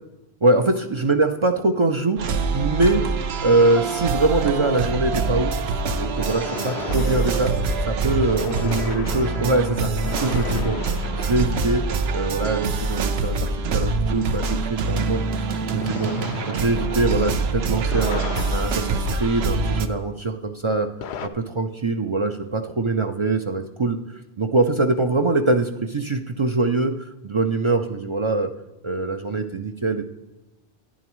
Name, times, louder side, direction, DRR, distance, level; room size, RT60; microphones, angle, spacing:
voice 1, 0.4-3.1 3.4-5.7 6.0-7.5 7.9-10.8 11.1-11.8 12.1-16.1 16.5-18.2 18.5-20.9 21.2-26.9 27.2-28.5 28.8-30.0, right 2 dB, 40° right, 6 dB, 0.4 m, -23 dB
sound 1, 2.2-19.9, right 4 dB, 75° right, 0.9 m, -25 dB
sound 2, 6.2-12.7 15.8-20.0 21.0-21.3, left 8 dB, 85° left, 0.9 m, -36 dB
11.0 x 10.0 x 3.0 m, 1.0 s
omnidirectional pair, 1.1 m